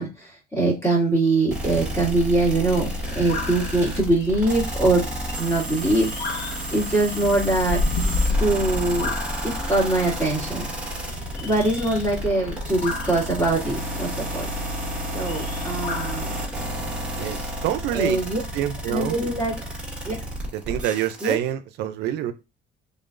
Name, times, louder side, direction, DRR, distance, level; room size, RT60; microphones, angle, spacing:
voice 1, 0.0-2.9 3.1-5.0 5.4-6.4 6.7-7.8 8.4-9.1 9.4-10.7 11.4-14.5 15.1-16.4 17.9-18.4 18.9-19.5 20.1-20.2 21.2-21.4, right 2 dB, 15° left, 2.0 m, -23 dB
sound 1, 1.5-21.4, right 1 dB, 5° right, 1.5 m, -31 dB
sound 2, 2.7-16.2, left 2 dB, 90° left, 0.8 m, -32 dB
voice 2, 17.2-18.2 18.5-19.1 20.5-22.3, right 12 dB, 80° right, 0.5 m, -26 dB
3.7 x 3.4 x 2.5 m
cardioid pair, 110°, 17 cm